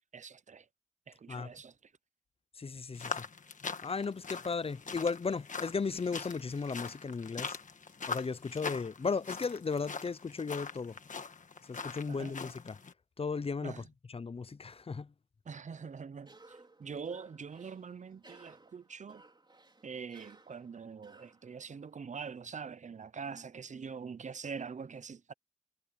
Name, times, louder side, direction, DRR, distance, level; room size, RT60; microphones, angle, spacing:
voice 1, 0.1-0.7 1.1-1.9 12.1-12.3 13.6-13.9 15.5-19.2 19.8-25.3, right 6 dB, 75° right, 0.6 m, -44 dB
voice 2, 2.6-3.2 3.8-7.6 8.1-10.9 11.7-12.8 13.2-13.8 14.1-15.1, left 5 dB, 50° left, 0.5 m, -35 dB
sound 1, 2.9-12.9, left 5 dB, 85° left, 1.4 m, -42 dB
Cough, 16.2-22.0, right 2 dB, 35° right, 4.2 m, -60 dB
wide cardioid pair, 90°, 13 cm